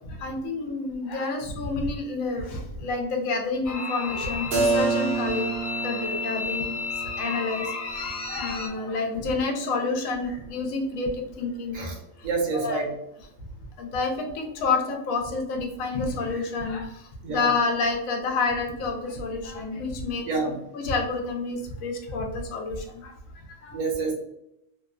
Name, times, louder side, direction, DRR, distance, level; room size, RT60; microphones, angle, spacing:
voice 1, 0.1-5.5 5.8-6.7 7.2-11.8 12.2-12.3 12.5-12.9 13.8-23.1 23.5-23.8, left 3 dB, 90° left, 3 dB, 1.0 m, -29 dB
sound 1, 3.6-8.7, left 4 dB, 55° left, 0.6 m, -33 dB
Keyboard (musical), 4.5-10.1, right 3 dB, 60° right, 0.8 m, -30 dB
voice 2, 12.2-13.0 17.2-17.5 20.2-20.6 23.7-24.1, right 4 dB, 80° right, 0 dB, 1.1 m, -27 dB
2.8 x 2.1 x 2.3 m, 0.81 s
omnidirectional pair, 1.3 m